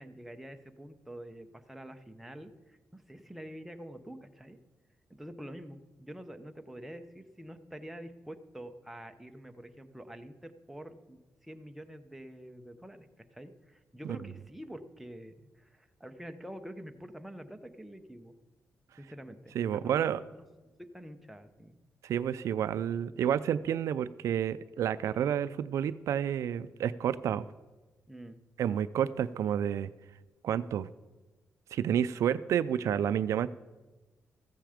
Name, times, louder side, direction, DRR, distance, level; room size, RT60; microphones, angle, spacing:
voice 1, 0.0-4.6 5.2-13.1 13.3-18.3 19.0-21.7 28.1-28.4, equal, 5° right, 6 dB, 0.7 m, -47 dB
voice 2, 19.5-20.2 22.0-27.4 28.6-29.9 30.4-30.9 31.7-33.5, right 9 dB, 75° right, 15 dB, 0.4 m, -30 dB
14.0 x 9.2 x 5.0 m, 1.2 s
wide cardioid pair, 155°, 5 cm